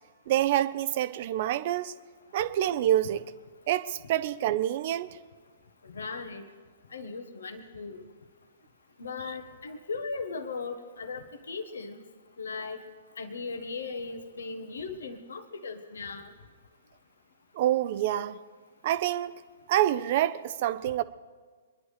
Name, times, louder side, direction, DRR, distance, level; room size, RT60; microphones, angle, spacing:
voice 1, 0.3-1.9 2.3-3.2 3.7-5.1 17.6-18.4 18.8-19.4 19.7-21.0, right 12 dB, 50° right, 0.7 m, -27 dB
voice 2, 5.9-6.4 6.9-8.0 9.0-12.0 12.4-12.8 13.2-16.3, left 4 dB, 70° left, 1.4 m, -37 dB
25.0 x 11.0 x 5.0 m
figure-of-eight pair, 120°, 0 cm